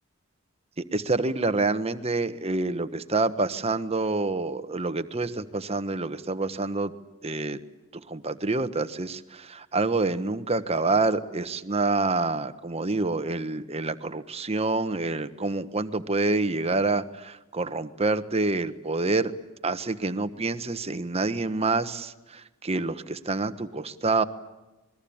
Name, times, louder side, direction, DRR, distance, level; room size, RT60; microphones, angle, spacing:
voice 1, 0.8-6.9 7.2-7.6 7.9-19.3 19.6-24.2, right 3 dB, 30° right, 11 dB, 1.3 m, -27 dB
27.0 x 21.5 x 8.8 m, 1.0 s
head